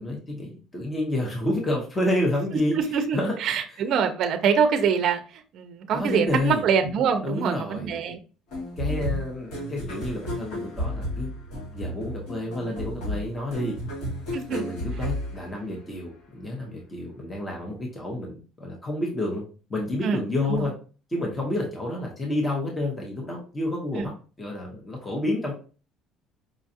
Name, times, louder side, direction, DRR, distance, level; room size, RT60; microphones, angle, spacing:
voice 1, 0.0-2.8 3.1-3.3 5.9-6.6 7.2-8.0 8.8-11.3 11.7-13.8 14.5-19.4 19.7-20.7 21.1-24.1 24.4-25.5, left 1 dB, 15° left, -1 dB, 0.9 m, -29 dB
voice 2, 2.7-8.2 14.3-14.6 20.0-20.2 20.5-20.7 24.0-24.1, right 6 dB, 45° right, 6 dB, 0.5 m, -25 dB
sound 1, 8.5-16.1, left 1 dB, 80° left, 1.9 m, -33 dB
4.9 x 2.4 x 2.7 m, 0.35 s
cardioid pair, 170°, 0 cm